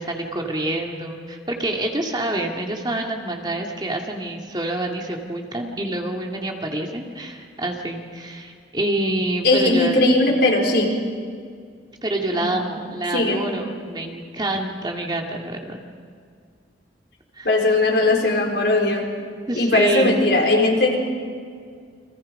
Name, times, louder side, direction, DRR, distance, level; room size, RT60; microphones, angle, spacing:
voice 1, 0.0-10.1 12.0-15.8 17.4-17.5 19.5-20.2, right 1 dB, 25° right, 1 dB, 2.2 m, -27 dB
voice 2, 9.4-10.9 12.3-12.5 13.1-13.4 17.4-19.1 19.5-21.0, left 2 dB, 65° left, 0 dB, 4.3 m, -19 dB
30.0 x 24.0 x 5.4 m, 2.1 s
head